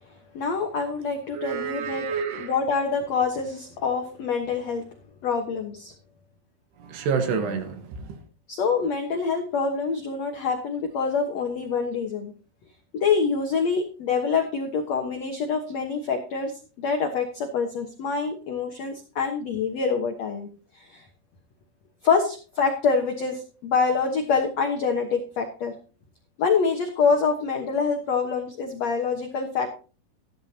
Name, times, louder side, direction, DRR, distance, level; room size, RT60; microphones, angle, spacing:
voice 1, 0.3-2.1 2.4-4.8 5.2-5.9 8.5-12.3 12.9-16.5 16.8-20.5 20.8-21.0 22.0-25.7 26.4-29.7, left 5 dB, 80° left, 3 dB, 1.5 m, -26 dB
voice 2, 1.3-2.6 6.8-8.3, right 6 dB, 70° right, 7 dB, 3.5 m, -29 dB
14.0 x 12.5 x 2.9 m, 0.36 s
omnidirectional pair, 5.1 m